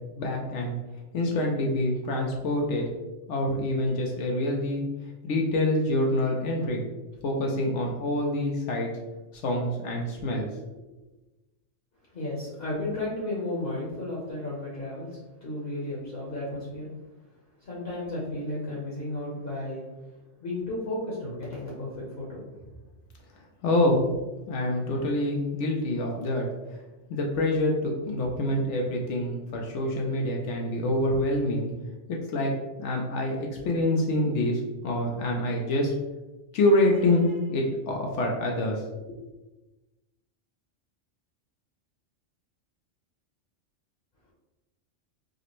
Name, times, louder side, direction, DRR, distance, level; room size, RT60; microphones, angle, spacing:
voice 1, 0.1-0.7 1.1-2.8 3.3-4.8 5.2-6.8 7.2-8.9 9.4-10.5 23.6-24.1 24.5-26.5 27.1-31.7 32.1-32.5 32.8-35.9 36.5-38.8, left 1 dB, 75° left, 0 dB, 0.9 m, -26 dB
voice 2, 12.1-16.9 17.6-19.8 20.4-22.8, left 1 dB, 50° left, -6 dB, 1.1 m, -33 dB
5.0 x 2.1 x 3.0 m, 1.1 s
omnidirectional pair, 1.3 m